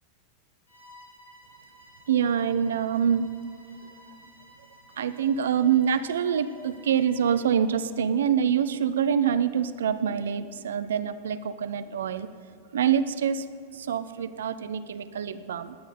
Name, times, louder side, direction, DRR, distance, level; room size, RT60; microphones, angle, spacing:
Bowed string instrument, 0.7-7.6, right 1 dB, 75° left, 2.4 m, -54 dB
voice 1, 2.1-3.3 5.0-12.3 12.7-13.4 13.7-15.8, right 8 dB, 65° right, 13 dB, 0.5 m, -25 dB
17.0 x 10.5 x 4.1 m, 2.5 s
figure-of-eight pair, 90°, 0 cm